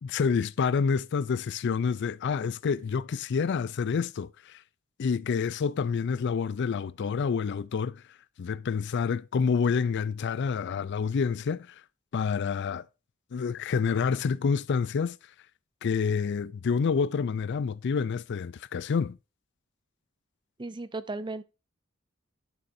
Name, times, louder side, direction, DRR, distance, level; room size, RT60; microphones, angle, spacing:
voice 1, 0.0-4.6 5.0-8.0 8.4-11.7 12.1-12.8 13.3-15.2 15.8-19.2, left 5 dB, 55° left, 0.4 m, -28 dB
voice 2, 20.6-21.4, right 2 dB, 20° right, 0.6 m, -35 dB
11.0 x 6.8 x 2.6 m
head